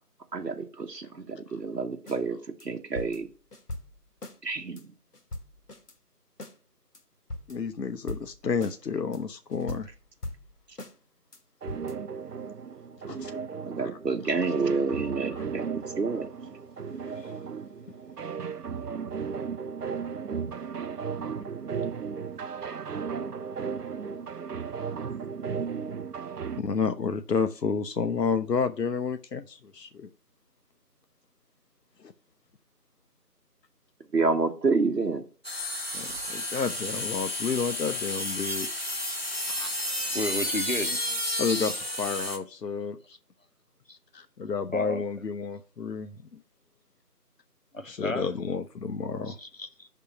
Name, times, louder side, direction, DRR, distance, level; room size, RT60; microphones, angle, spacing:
voice 1, 0.3-3.3 4.4-4.8 13.7-15.7 16.0-16.2 34.1-35.2, right 4 dB, 90° right, 1.0 m, -28 dB
sound 1, 2.0-2.2 2.6-2.7 2.9-4.4 4.8-4.9 5.1-5.9 6.4-6.6 6.9-7.0 7.3-7.8 8.1-8.8 9.1-9.2 9.5-10.9 11.3-11.4 11.7-11.9, left 1 dB, 70° left, 1.1 m, -41 dB
voice 2, 7.5-9.9 13.1-13.3 13.8-13.9 14.2-14.3 15.3-15.5 17.2-17.3 26.6-30.1 32.0-32.1 35.9-38.7 39.5-39.7 41.4-43.0 44.1-46.2 47.9-49.4, left 5 dB, 90° left, 0.7 m, -30 dB
sound 2, 11.6-26.6, right 6 dB, 70° right, 0.6 m, -35 dB
sound 3, 35.4-42.4, left 1 dB, 40° right, 1.0 m, -31 dB
voice 3, 40.1-41.1 43.9-44.0 44.7-45.0 47.7-48.3 49.3-49.9, left 1 dB, 55° left, 0.7 m, -33 dB
5.9 x 3.6 x 5.7 m
figure-of-eight pair, 175°, 48 cm